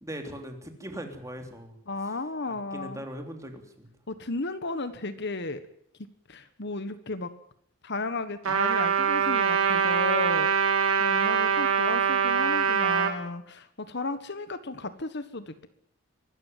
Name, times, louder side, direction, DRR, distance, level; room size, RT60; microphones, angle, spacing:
voice 1, 0.0-1.8 2.7-3.9, equal, 15° right, 4 dB, 3.2 m, -39 dB
voice 2, 1.9-3.1 4.1-5.6 6.3-7.3 7.8-15.7, left 3 dB, 55° left, 11 dB, 1.5 m, -34 dB
Trumpet, 8.4-13.1, right 7 dB, 75° right, 3.0 m, -24 dB
24.0 x 13.5 x 9.3 m, 0.67 s
head